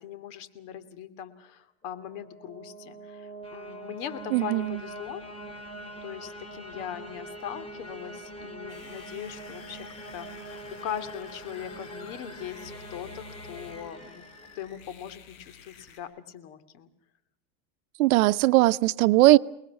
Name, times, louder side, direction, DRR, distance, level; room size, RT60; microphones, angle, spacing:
voice 1, 0.0-5.2 6.0-9.9 10.1-14.2 14.5-16.9, left 9 dB, 55° left, 2.7 m, -40 dB
sound 1, 2.0-15.0, right 1 dB, 15° left, 3.8 m, -43 dB
voice 2, 4.3-4.7 18.0-19.4, right 18 dB, 80° right, 0.8 m, -19 dB
sound 2, 8.7-16.0, left 6 dB, 75° left, 5.8 m, -51 dB
30.0 x 20.0 x 6.0 m
supercardioid pair, 150°, 42 cm